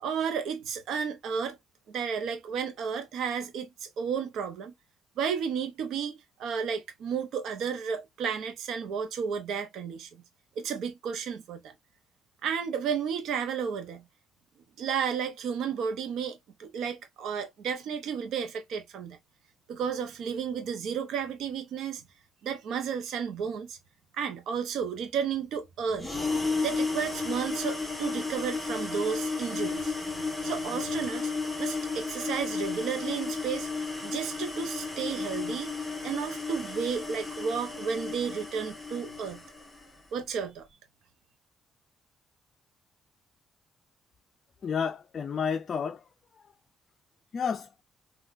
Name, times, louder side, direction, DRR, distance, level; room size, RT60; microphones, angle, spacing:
voice 1, 0.0-1.6 1.9-4.7 5.2-10.1 10.6-11.7 12.4-14.0 14.8-19.2 19.7-22.0 22.4-23.8 24.2-26.1 26.6-31.3 31.6-33.7 34.0-35.8 36.0-39.4 40.1-40.7, right 7 dB, 80° right, 0.7 m, -32 dB
sound 1, 26.0-39.9, left 4 dB, 5° left, 1.2 m, -33 dB
voice 2, 44.6-46.5 47.3-47.7, left 6 dB, 50° left, 0.4 m, -31 dB
3.7 x 2.3 x 2.5 m
cardioid pair, 90°, 0 cm